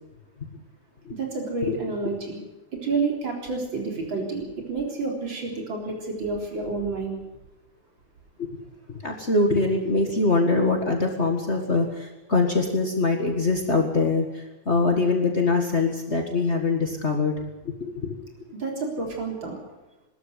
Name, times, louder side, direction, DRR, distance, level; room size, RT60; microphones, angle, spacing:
voice 1, 1.1-2.4 2.7-7.2 18.5-19.6, right 4 dB, 75° right, 1 dB, 4.6 m, -29 dB
voice 2, 8.9-18.2, left 3 dB, 35° left, 3 dB, 2.1 m, -23 dB
20.5 x 13.5 x 9.7 m, 1.0 s
omnidirectional pair, 2.1 m